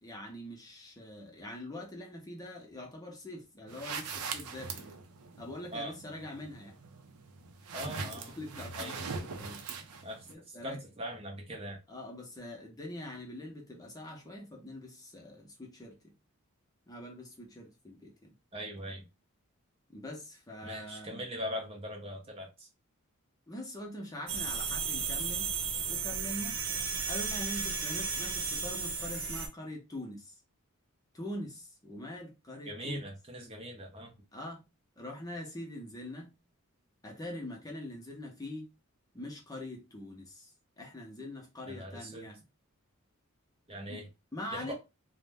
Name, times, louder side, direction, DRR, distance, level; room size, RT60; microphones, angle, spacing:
voice 1, 0.0-5.0 5.4-6.7 7.9-9.1 9.4-10.8 11.9-16.1 16.9-18.3 19.9-21.2 23.5-25.5 25.9-26.6 27.1-30.3 31.1-33.0 34.3-34.6 35.0-36.3 37.0-38.7 39.1-40.5 40.8-42.4 43.9-44.0 44.3-44.7, left 1 dB, 15° left, 0.6 m, -43 dB
sound 1, 3.7-10.3, right 5 dB, 85° right, 0.5 m, -42 dB
voice 2, 7.7-8.4 8.8-9.0 10.0-11.8 18.5-19.1 20.6-22.7 32.6-34.1 41.7-42.3 43.7-44.1 44.5-44.7, equal, 25° right, 0.6 m, -41 dB
sound 2, 24.3-29.5, right 5 dB, 70° right, 0.8 m, -34 dB
2.5 x 2.1 x 3.2 m
head